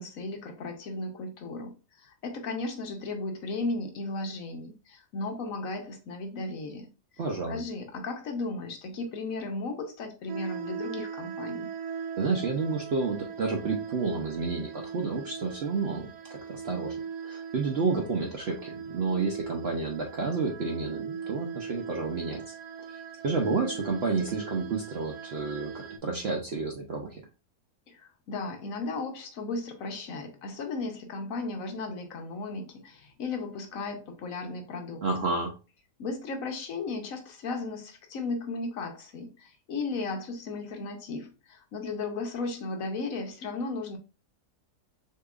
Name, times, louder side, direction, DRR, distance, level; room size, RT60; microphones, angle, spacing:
voice 1, 0.0-11.7 27.9-35.1 36.0-44.0, left 3 dB, 65° left, 1.0 m, -35 dB
voice 2, 7.2-7.6 12.2-16.1 16.5-16.9 17.2-22.4 22.9-25.7 26.0-27.2 35.0-35.5, right 4 dB, 60° right, 0.7 m, -30 dB
sound 1, 10.3-26.0, right 6 dB, 90° right, 1.3 m, -40 dB
6.4 x 2.9 x 2.4 m
omnidirectional pair, 1.7 m